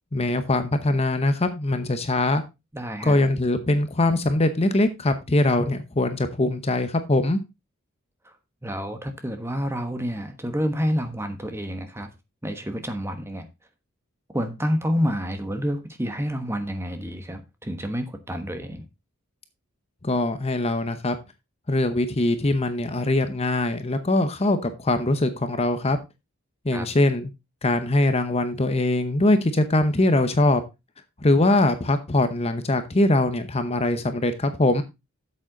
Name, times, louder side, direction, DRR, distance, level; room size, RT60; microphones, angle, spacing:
voice 1, 0.1-2.4 3.0-7.4 20.0-21.2 21.7-26.0 26.6-27.3 27.6-30.6 31.2-34.8, left 2 dB, 30° left, 0.8 m, -22 dB
voice 2, 2.7-3.2 8.2-8.4 8.6-12.1 12.4-13.5 14.3-18.8 26.7-26.9, equal, 10° right, 1.2 m, -28 dB
8.7 x 7.6 x 3.8 m
head